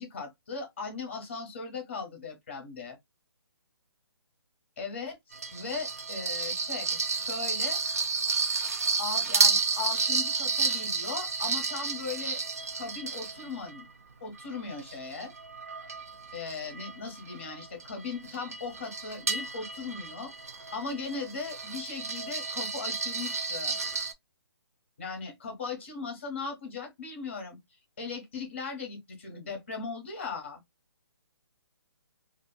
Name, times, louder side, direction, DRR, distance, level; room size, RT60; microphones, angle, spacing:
voice 1, 0.0-3.0 4.8-5.2 5.5-7.8 9.0-12.4 12.8-13.9 14.2-15.3 16.3-20.3 20.7-23.8 25.0-27.6 28.0-30.6, left 4 dB, 30° left, 0.8 m, -38 dB
sound 1, 5.3-13.8 14.4-24.1, right 4 dB, 35° right, 0.4 m, -31 dB
2.7 x 2.4 x 2.2 m
hypercardioid pair, 180°, 14 cm